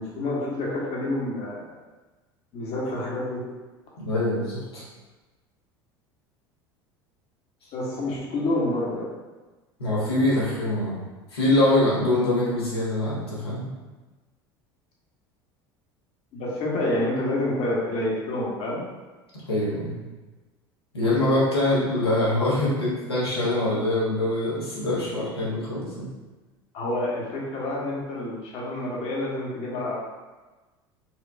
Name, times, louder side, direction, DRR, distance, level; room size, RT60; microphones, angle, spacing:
voice 1, 0.0-1.7 2.5-3.4 7.7-9.1 16.3-18.8 26.7-30.0, left 1 dB, 55° left, -4 dB, 1.1 m, -28 dB
voice 2, 4.0-4.8 9.8-11.0 11.3-13.7 19.5-20.0 20.9-26.1, left 1 dB, 90° left, -8 dB, 1.1 m, -24 dB
4.4 x 2.3 x 2.3 m, 1.2 s
hypercardioid pair, 75°, 13 cm